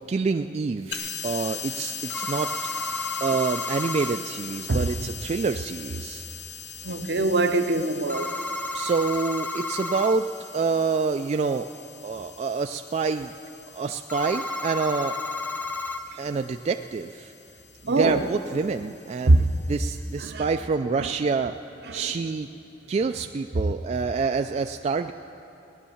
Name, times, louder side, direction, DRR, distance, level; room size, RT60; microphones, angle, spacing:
voice 1, 0.1-2.5 3.2-6.2 8.7-10.3 10.5-11.7 12.0-13.3 13.7-15.2 16.2-17.3 18.0-19.4 19.7-21.5 21.9-22.5 22.9-25.1, right 4 dB, 40° right, 0.3 m, -27 dB
sound 1, 0.9-20.3, left 7 dB, 80° left, 1.1 m, -41 dB
sound 2, 2.1-4.2 8.1-10.2 14.1-16.0, left 3 dB, 10° left, 0.7 m, -32 dB
voice 2, 4.7-5.1 6.8-8.4 16.1-16.2 17.9-18.3 19.2-19.6 20.2-20.5 21.0-21.1 21.4-21.5 21.8-22.1 23.6-23.7, right 2 dB, 70° right, 0.8 m, -23 dB
17.0 x 10.0 x 7.1 m
head